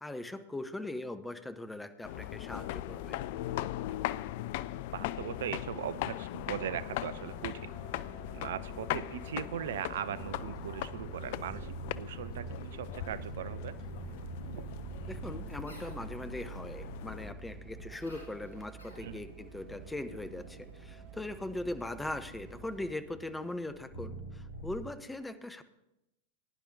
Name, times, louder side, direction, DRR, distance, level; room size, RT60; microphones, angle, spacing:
voice 1, 0.0-3.2 15.1-25.6, left 2 dB, 5° left, 10 dB, 0.8 m, -40 dB
sound 1, 2.0-17.3, left 14 dB, 50° left, 0.3 m, -39 dB
voice 2, 4.9-8.0 8.3-13.8 14.5-14.7 19.0-19.2, right 10 dB, 60° right, 16 dB, 0.4 m, -39 dB
sound 2, 7.0-23.0, right 8 dB, 40° right, 1.3 m, -50 dB
sound 3, 10.1-24.8, right 2 dB, 70° left, 3.1 m, -47 dB
20.5 x 10.5 x 2.7 m, 0.90 s
figure-of-eight pair, 90°, 0 cm